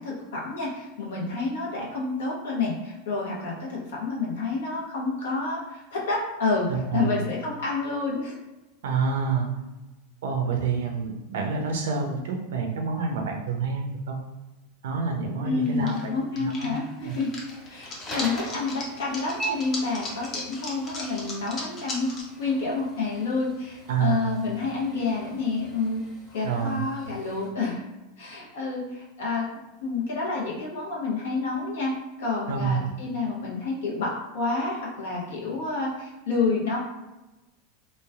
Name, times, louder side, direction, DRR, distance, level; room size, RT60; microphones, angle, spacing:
voice 1, 0.0-8.3 15.4-17.3 17.7-26.0 26.3-27.8 28.2-29.5 29.8-36.8, left 3 dB, 75° left, -3 dB, 0.7 m, -29 dB
voice 2, 6.7-7.2 8.8-9.5 10.2-14.2 14.8-16.1 16.4-16.7 17.0-17.1 23.9-24.3 26.4-26.8 32.5-32.9, right 5 dB, 70° right, 3 dB, 0.5 m, -28 dB
sound 1, 15.7-16.0 16.4-22.2, left 2 dB, 40° left, 0.7 m, -37 dB
sound 2, 17.0-27.5, right 2 dB, 20° left, 1.3 m, -42 dB
3.2 x 2.2 x 2.3 m, 1.0 s
hypercardioid pair, 90°, 0 cm